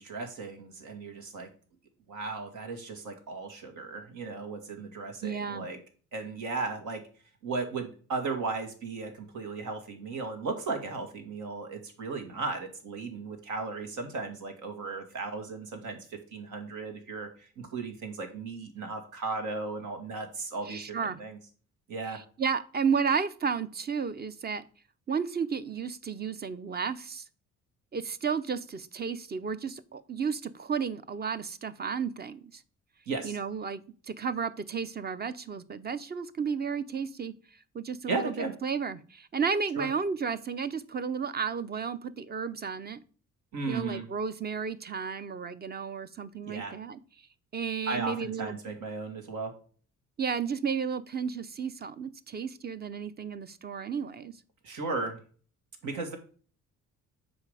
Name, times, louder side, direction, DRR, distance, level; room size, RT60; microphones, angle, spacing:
voice 1, 0.0-1.5 2.1-5.8 6.1-7.0 7.4-21.4 21.9-22.2 33.1-33.4 38.1-38.5 39.8-39.9 43.5-44.1 46.4-46.7 47.9-49.5 54.6-55.2 55.8-56.2, right 3 dB, 80° right, 5 dB, 2.0 m, -36 dB
voice 2, 5.2-5.7 20.7-21.2 22.1-24.6 25.1-27.2 27.9-32.6 33.2-37.3 37.7-43.0 43.7-47.0 47.5-48.5 50.2-54.3, right 6 dB, 35° right, 13 dB, 0.7 m, -33 dB
7.2 x 4.9 x 5.0 m, 0.42 s
cardioid pair, 90°, 30 cm